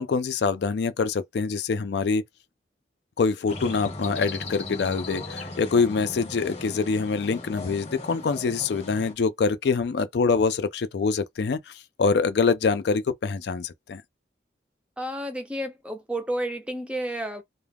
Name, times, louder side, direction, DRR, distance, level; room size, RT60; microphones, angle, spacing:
voice 1, 0.0-2.2 3.2-11.7 12.0-14.0, left 4 dB, 65° left, 0.4 m, -25 dB
sound 1, 3.5-9.1, left 2 dB, 35° left, 0.8 m, -38 dB
voice 2, 15.0-17.4, right 1 dB, 5° right, 0.5 m, -31 dB
2.3 x 2.1 x 3.3 m
head